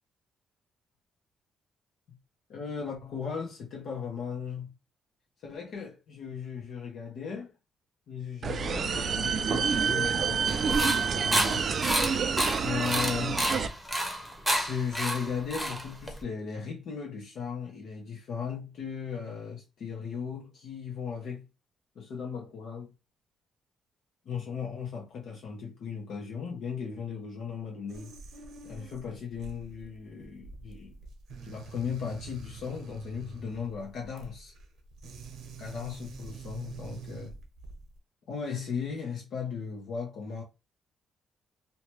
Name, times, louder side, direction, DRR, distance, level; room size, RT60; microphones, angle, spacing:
voice 1, 2.5-4.7 5.4-7.5 8.1-11.7 12.6-13.4 14.5-21.4 22.0-22.9 24.2-28.1 28.6-31.0 31.4-34.5 35.6-37.4 38.3-40.4, left 6 dB, 70° left, 0.7 m, -37 dB
sound 1, 8.4-13.7, right 6 dB, 50° right, 0.3 m, -28 dB
sound 2, 10.5-16.2, equal, ahead, 0.8 m, -30 dB
sound 3, 27.9-38.0, right 4 dB, 75° right, 0.8 m, -45 dB
2.7 x 2.2 x 3.0 m
cardioid pair, 90°, 0 cm